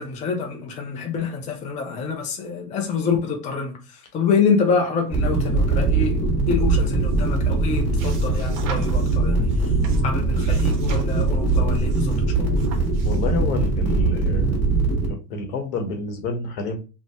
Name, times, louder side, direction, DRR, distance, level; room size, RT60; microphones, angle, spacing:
voice 1, 0.0-9.7 10.0-12.6, left 5 dB, 15° left, 0.4 m, -26 dB
sound 1, 5.1-15.1, right 3 dB, 5° right, 1.3 m, -21 dB
sound 2, 6.6-13.4, right 1 dB, 40° right, 0.8 m, -36 dB
voice 2, 13.0-14.6 15.1-16.8, left 3 dB, 80° left, 1.0 m, -29 dB
2.7 x 2.1 x 3.3 m
supercardioid pair, 120°, 46 cm